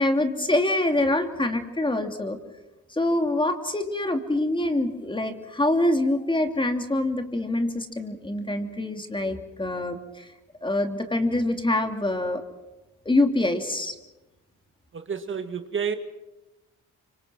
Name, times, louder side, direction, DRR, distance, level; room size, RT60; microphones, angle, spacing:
voice 1, 0.0-2.4 2.9-10.3 10.6-12.4 13.0-13.9, left 1 dB, 15° left, 6 dB, 2.8 m, -25 dB
voice 2, 14.9-16.0, right 6 dB, 40° right, 7 dB, 2.1 m, -30 dB
26.0 x 24.5 x 6.2 m, 1.0 s
cardioid pair, 90°, 30 cm